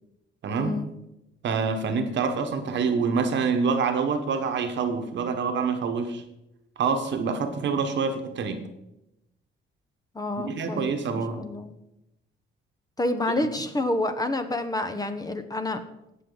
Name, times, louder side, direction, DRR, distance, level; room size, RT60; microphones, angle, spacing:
voice 1, 0.5-0.9 10.1-11.7 13.0-15.8, left 2 dB, 20° left, 8 dB, 1.0 m, -29 dB
voice 2, 1.4-6.2 6.8-8.6 10.4-11.4 13.6-13.7, right 5 dB, 65° right, 7 dB, 1.3 m, -26 dB
17.0 x 6.1 x 4.0 m, 0.88 s
cardioid pair, 90°, 20 cm